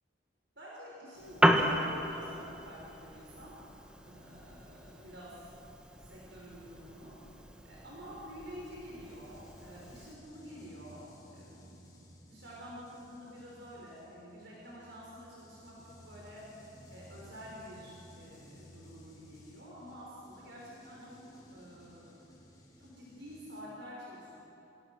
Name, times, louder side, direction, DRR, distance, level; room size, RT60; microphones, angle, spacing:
voice 1, 0.6-3.6 4.0-5.5 6.0-7.2 7.6-11.0 11.3-21.2 21.5-22.2 22.8-24.4, equal, 65° right, -4 dB, 5.6 m, -49 dB
Piano, 1.2-10.1, equal, 5° right, 1.6 m, -35 dB
sound 1, 9.0-23.6, equal, 20° left, 5.3 m, -57 dB
28.5 x 27.5 x 6.4 m, 3.0 s
head